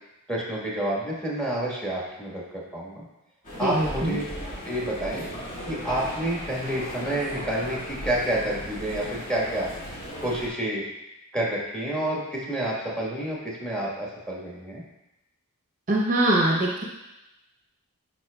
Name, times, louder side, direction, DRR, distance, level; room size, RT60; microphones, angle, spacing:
voice 1, 0.3-3.0 3.6-4.2 4.6-5.2 5.6-9.7 10.2-10.8 11.3-14.8, right 1 dB, 5° left, -4 dB, 1.3 m, -29 dB
sound 1, 3.4-10.5, equal, 40° left, 1.9 m, -37 dB
voice 2, 3.6-4.2 15.9-16.8, right 1 dB, 35° right, -2 dB, 0.7 m, -23 dB
10.0 x 4.2 x 2.2 m, 0.96 s
head